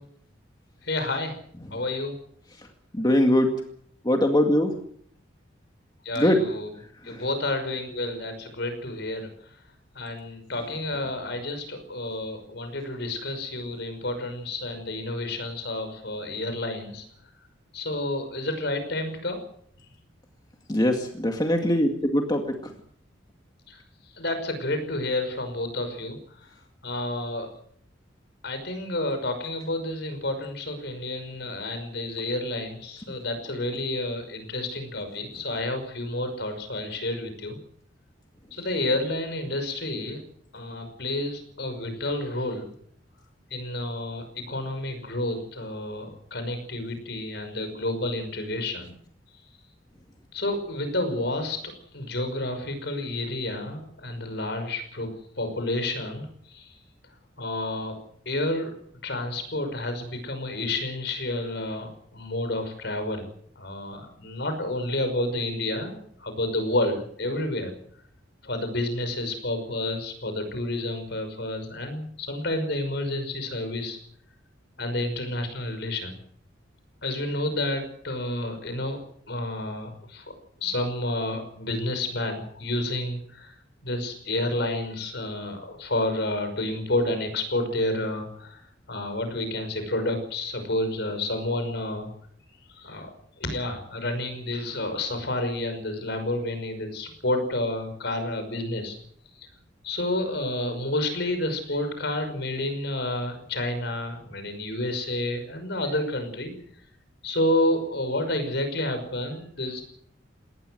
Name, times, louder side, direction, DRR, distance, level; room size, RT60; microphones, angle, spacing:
voice 1, 0.8-1.4 1.7-2.2 6.0-6.7 7.0-9.3 9.9-17.1 17.7-19.4 23.7-23.8 24.1-26.2 26.8-27.5 28.4-37.6 38.5-40.2 40.5-42.7 43.5-48.9 50.3-51.6 51.9-55.1 55.4-56.8 57.4-58.0 58.3-58.7 59.0-63.3 63.6-67.7 68.4-74.0 74.8-76.2 77.0-79.0 79.3-80.3 80.6-83.6 83.8-88.6 88.9-92.1 92.7-93.1 93.4-99.0 99.4-99.5 99.8-106.5 107.2-109.8, left 1 dB, 60° left, 8 dB, 5.8 m, -30 dB
voice 2, 3.0-3.5 4.1-4.7 6.2-6.4 7.1-7.2 20.7-22.4, left 1 dB, 20° left, 3 dB, 2.1 m, -21 dB
20.5 x 18.5 x 7.9 m, 0.65 s
head